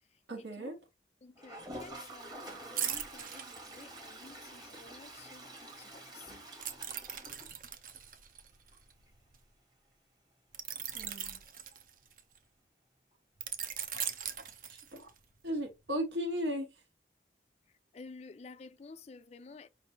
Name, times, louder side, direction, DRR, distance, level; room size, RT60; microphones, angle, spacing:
voice 1, 0.3-0.8 10.9-11.4 14.7-15.1 15.4-16.7, equal, 85° right, 1.5 m, -36 dB
voice 2, 1.2-6.3 17.9-19.7, left 4 dB, 35° left, 0.4 m, -52 dB
Toilet flush, 1.4-8.1 8.4-8.5 8.7-8.8 9.1-9.2 11.7-11.8 13.1-13.2, right 1 dB, 25° right, 1.1 m, -48 dB
sound 1, 2.8-4.3 6.6-9.4 10.5-12.4 13.4-15.2 15.7-15.9, right 9 dB, 50° right, 0.6 m, -40 dB
5.1 x 3.3 x 2.9 m
head